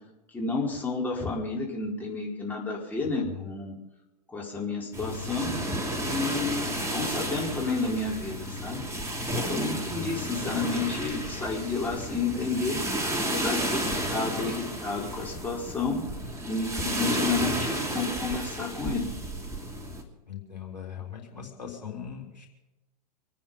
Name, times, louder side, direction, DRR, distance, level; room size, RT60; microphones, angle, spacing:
voice 1, 0.3-3.8 4.3-5.5 6.0-8.8 9.3-12.8 13.3-13.8 14.1-16.0 16.4-19.1, left 3 dB, 10° left, -4 dB, 4.6 m, -31 dB
sound 1, 4.9-20.0, right 1 dB, 15° right, 2.9 m, -32 dB
voice 2, 9.6-10.3 20.3-22.5, left 8 dB, 85° left, 0 dB, 4.0 m, -40 dB
26.0 x 9.4 x 5.5 m, 1.0 s
figure-of-eight pair, 100°, 21 cm